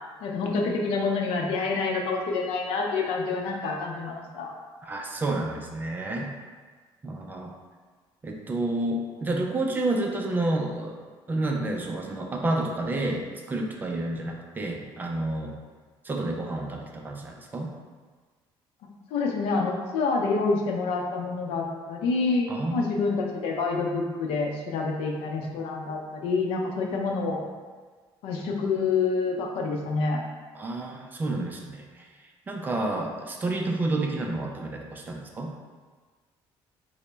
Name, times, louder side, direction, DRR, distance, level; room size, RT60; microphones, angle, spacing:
voice 1, 0.2-4.5 19.1-27.4 28.2-30.2, left 4 dB, 85° left, 1 dB, 0.5 m, -27 dB
voice 2, 4.8-6.3 7.0-7.5 8.2-11.0 11.3-15.5 16.0-17.7 22.5-23.0 30.5-32.1 32.5-35.5, right 2 dB, 20° right, 1 dB, 0.3 m, -30 dB
3.8 x 2.0 x 3.3 m, 1.4 s
cardioid pair, 155°, 10 cm